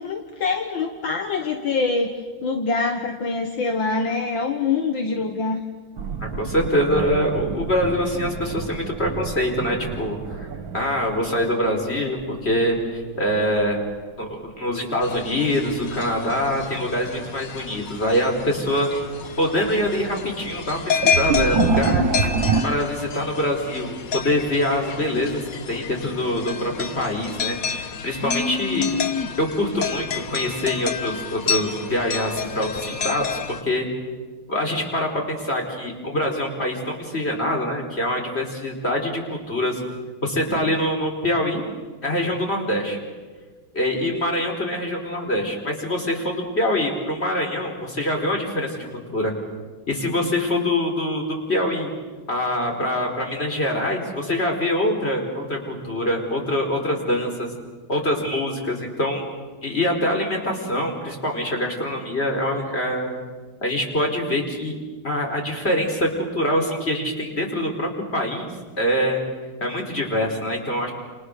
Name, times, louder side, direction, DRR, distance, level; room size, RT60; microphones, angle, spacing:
voice 1, 0.0-2.1 2.4-5.6, left 4 dB, 65° left, 5 dB, 2.2 m, -24 dB
sound 1, 6.0-12.8 13.1-14.0 15.6-16.0 16.5-16.6 17.6-17.7 18.1-18.5 18.9-22.6, right 4 dB, 70° right, 2.0 m, -27 dB
voice 2, 6.2-10.5 10.7-13.8 14.2-18.9 19.4-22.2 22.6-28.9 29.4-33.9 34.5-39.8 40.2-41.6 42.0-43.0 43.7-49.3 49.9-51.9 52.3-57.5 57.9-59.3 59.6-63.2 63.6-64.8 65.0-69.2 69.6-70.9, left 1 dB, 30° left, 1 dB, 4.7 m, -24 dB
sound 2, 15.0-33.6, left 6 dB, 50° left, 1.4 m, -29 dB
30.0 x 29.0 x 6.7 m, 1.4 s
omnidirectional pair, 2.2 m